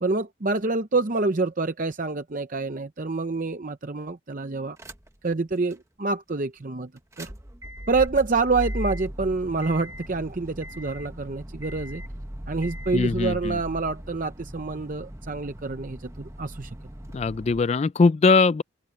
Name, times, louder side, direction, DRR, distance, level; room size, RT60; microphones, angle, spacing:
voice 1, 0.0-4.8 5.2-6.9 7.2-7.3 7.9-12.0 12.5-16.7, right 3 dB, 40° right, 0.7 m, -27 dB
sound 1, 4.8-5.3 5.7-5.8 7.0-17.6, equal, 15° right, 1.1 m, -38 dB
voice 2, 12.9-13.6 17.1-18.6, left 4 dB, 30° left, 0.3 m, -21 dB
open air
head